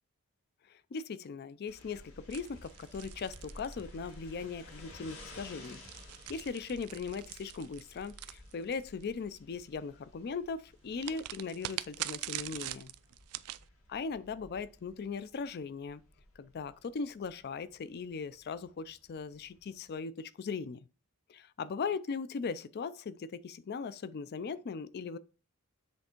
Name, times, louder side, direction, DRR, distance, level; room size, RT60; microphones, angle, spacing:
voice 1, 0.7-5.8 6.3-12.9 13.9-16.0 16.4-20.8 21.3-25.2, left 5 dB, 45° left, 0.4 m, -39 dB
sound 1, 1.7-19.9, left 1 dB, 65° left, 2.2 m, -55 dB
sound 2, 2.3-4.3 5.3-9.0 11.0-13.6, right 15 dB, 85° right, 0.4 m, -43 dB
sound 3, 2.5-7.4, right 2 dB, 25° right, 0.5 m, -59 dB
7.8 x 3.4 x 4.4 m
head